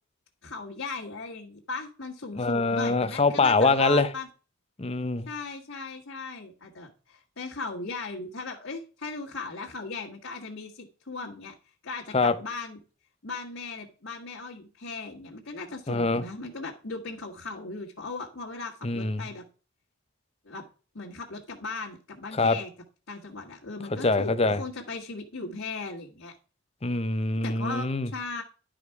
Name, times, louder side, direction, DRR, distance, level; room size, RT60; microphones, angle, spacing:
voice 1, 0.4-4.3 5.3-11.5 11.8-12.8 13.2-19.4 20.5-20.7 20.9-22.7 23.1-26.3 27.4-28.4, left 3 dB, 65° left, 1.7 m, -37 dB
voice 2, 2.4-4.1 4.8-5.3 12.1-12.3 15.9-16.2 18.8-19.2 22.4-22.6 23.9-24.6 26.8-28.1, left 3 dB, 30° left, 0.7 m, -24 dB
11.5 x 5.1 x 4.7 m
head